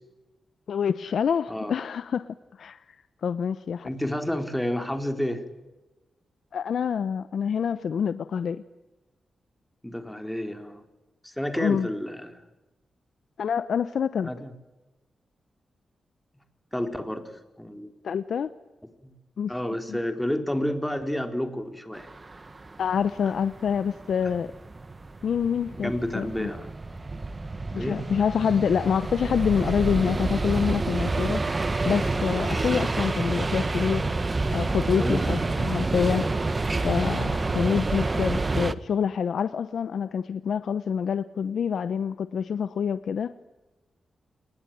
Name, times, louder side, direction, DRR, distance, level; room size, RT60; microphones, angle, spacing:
voice 1, 0.7-2.8 3.2-3.9 6.5-8.6 11.6-11.9 13.4-14.3 18.0-18.5 19.4-19.5 19.9-20.0 22.8-24.5 25.2-26.5 27.7-31.6 31.8-34.1 34.5-36.3 36.8-43.3, left 7 dB, 75° left, 13 dB, 0.9 m, -26 dB
voice 2, 3.8-5.4 9.8-10.8 11.2-12.4 14.2-14.5 16.7-17.3 17.6-17.9 19.0-19.1 19.5-22.1 25.7-26.7 27.8-28.0 35.0-35.3, left 1 dB, 5° left, 7 dB, 4.1 m, -30 dB
sound 1, 22.0-38.7, right 3 dB, 35° right, 1.5 m, -28 dB
28.5 x 21.0 x 9.3 m, 1.1 s
cardioid pair, 65°, 0 cm